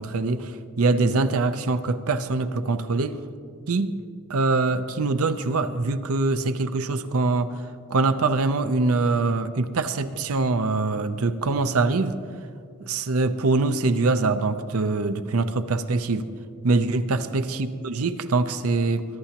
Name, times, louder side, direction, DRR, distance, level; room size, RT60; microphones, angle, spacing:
voice 1, 0.0-3.2 3.7-4.0 4.3-7.6 7.9-12.2 12.8-16.3 16.6-19.1, right 3 dB, 75° right, 11 dB, 0.6 m, -23 dB
22.0 x 11.5 x 2.9 m, 2.2 s
head